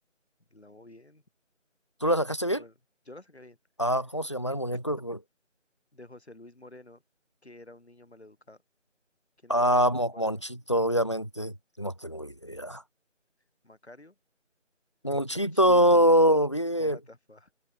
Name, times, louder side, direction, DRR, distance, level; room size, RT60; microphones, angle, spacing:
voice 1, 0.5-1.2 2.5-2.7 3.0-3.6 5.9-7.0 7.4-8.6 9.4-9.8 10.1-10.3 13.6-14.1 15.3-16.0 16.8-17.5, left 2 dB, 60° left, 4.4 m, -50 dB
voice 2, 2.0-2.6 3.8-5.2 9.5-12.8 15.0-17.0, equal, 25° left, 1.6 m, -24 dB
figure-of-eight pair, 175°, 38 cm